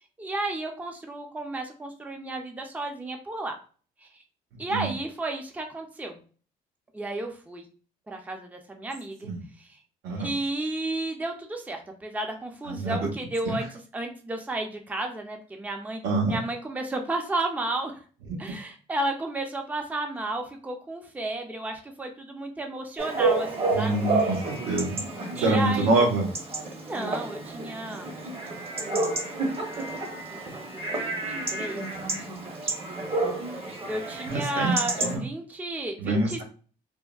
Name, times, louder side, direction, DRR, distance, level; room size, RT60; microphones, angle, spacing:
voice 1, 0.2-3.5 4.0-4.2 4.6-6.2 6.9-7.6 8.1-9.3 9.6-9.8 10.2-16.0 16.3-18.0 18.4-24.0 25.3-25.9 26.9-28.1 29.7-30.0 30.3-31.8 33.9-36.4, right 2 dB, 10° right, 4 dB, 0.5 m, -33 dB
voice 2, 12.7-13.0 13.4-13.5 16.0-16.4 23.7-25.0 25.4-26.3 34.3-35.2 36.0-36.4, right 2 dB, 80° right, 0 dB, 1.0 m, -25 dB
Chatter / Bark / Livestock farm animals working animals, 23.0-35.2, right 3 dB, 35° right, 0.9 m, -30 dB
3.5 x 2.1 x 2.3 m, 0.40 s
cardioid pair, 110°, 17 cm